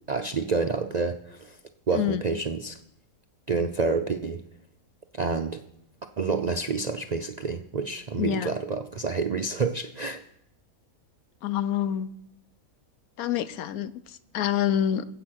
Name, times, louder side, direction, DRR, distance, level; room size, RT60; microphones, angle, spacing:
voice 1, 0.1-1.6 1.9-2.8 3.5-4.4 5.1-5.6 6.2-10.2, right 4 dB, 60° right, 6 dB, 0.4 m, -28 dB
voice 2, 8.2-8.5 11.4-12.1 13.2-13.9 14.3-15.0, left 10 dB, 85° left, 14 dB, 1.1 m, -26 dB
16.0 x 8.1 x 6.3 m, 0.78 s
omnidirectional pair, 1.5 m